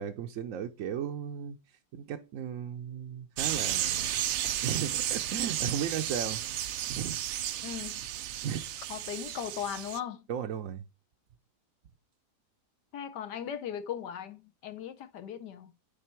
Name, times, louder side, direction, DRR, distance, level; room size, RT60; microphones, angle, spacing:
voice 1, 0.0-4.1 4.6-6.4 6.9-7.2 8.4-8.6 10.3-10.9, right 8 dB, 65° right, 0.9 m, -35 dB
sound 1, 3.4-10.0, right 12 dB, 85° right, 0.6 m, -33 dB
voice 2, 7.6-8.0 8.9-10.3 12.9-15.7, left 9 dB, 80° left, 1.4 m, -38 dB
10.0 x 4.1 x 4.5 m
omnidirectional pair, 1.8 m